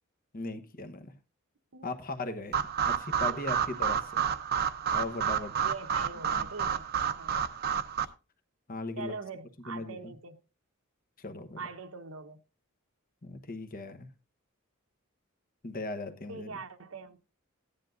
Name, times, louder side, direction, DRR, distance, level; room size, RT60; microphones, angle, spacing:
voice 1, 0.3-1.1 1.8-4.3 4.9-5.5 6.3-6.5 8.7-9.1 9.7-10.1 11.2-11.6 13.2-14.1 15.6-16.5, left 2 dB, 40° left, 1.1 m, -38 dB
sound 1, 2.5-8.0, right 8 dB, 45° right, 0.8 m, -30 dB
voice 2, 5.3-7.4 9.0-10.4 11.6-12.4 16.3-17.2, right 4 dB, 70° right, 1.1 m, -43 dB
15.5 x 10.0 x 2.6 m
head